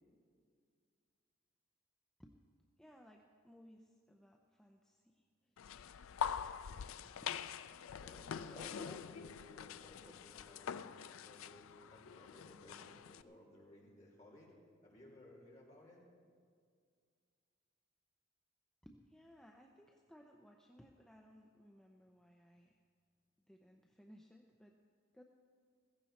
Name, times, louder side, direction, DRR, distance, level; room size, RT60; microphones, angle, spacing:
voice 1, 2.8-5.5 6.7-7.3 8.5-9.2 10.0-10.1 10.5-10.6 18.8-22.8 23.5-24.7 25.1-25.2, equal, 5° left, 1 dB, 0.5 m, -60 dB
sound 1, 5.6-13.2, left 7 dB, 80° left, 0.4 m, -45 dB
voice 2, 8.0-14.5 14.8-16.0, left 1 dB, 35° left, -4 dB, 3.0 m, -59 dB
15.5 x 15.0 x 4.2 m, 2.1 s
head